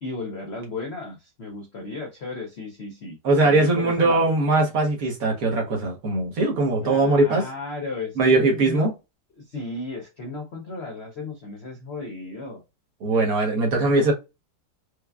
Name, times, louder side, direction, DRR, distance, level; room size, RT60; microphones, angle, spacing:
voice 1, 0.0-4.3 6.8-8.9 9.4-12.6, left 3 dB, 65° left, 0.6 m, -35 dB
voice 2, 3.2-7.5 8.2-8.9 13.0-14.1, right 2 dB, 55° right, 1.2 m, -20 dB
4.8 x 2.2 x 2.2 m
omnidirectional pair, 2.0 m